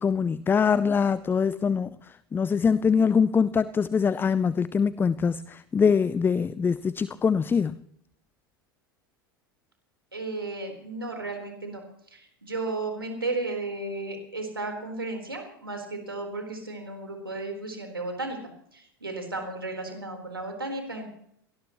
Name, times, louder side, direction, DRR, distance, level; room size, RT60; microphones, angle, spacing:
voice 1, 0.0-7.8, left 6 dB, 15° left, 0.6 m, -23 dB
voice 2, 10.1-11.8 12.1-18.4 18.7-21.1, right 2 dB, 90° right, 4.2 m, -34 dB
23.5 x 18.5 x 3.1 m
figure-of-eight pair, 80°, 12 cm